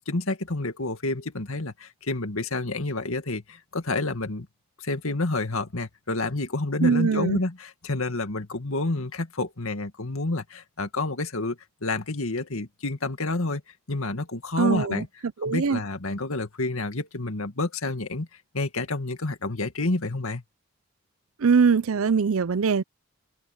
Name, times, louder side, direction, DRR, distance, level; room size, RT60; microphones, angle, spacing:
voice 1, 0.0-4.5 4.8-13.6 13.9-15.1 15.4-18.3 18.5-20.4, left 2 dB, 75° left, 2.1 m, -29 dB
voice 2, 6.8-7.4 14.6-15.0 15.4-15.8 21.4-22.8, right 5 dB, 75° right, 0.5 m, -22 dB
open air
head